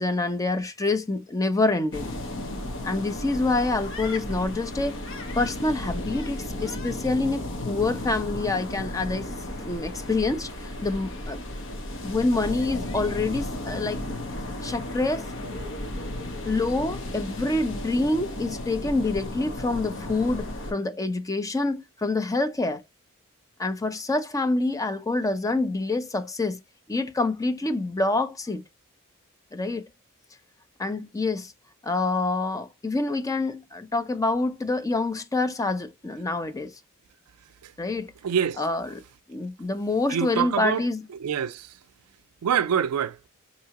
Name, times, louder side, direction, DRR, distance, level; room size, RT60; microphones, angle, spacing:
voice 1, 0.0-2.1 2.8-5.0 5.4-9.3 9.6-11.4 12.0-14.0 14.6-15.3 16.5-22.8 23.6-26.6 26.9-28.6 29.5-29.9 30.8-31.5 31.8-36.7 37.8-38.1 38.6-39.0 39.3-41.0, left 2 dB, 15° left, 0.5 m, -26 dB
sound 1, 1.9-20.7, left 1 dB, 60° left, 1.0 m, -34 dB
voice 2, 38.2-38.6 40.1-40.8 41.2-41.7 42.4-43.2, right 8 dB, 90° right, 0.4 m, -25 dB
4.6 x 2.8 x 2.8 m
head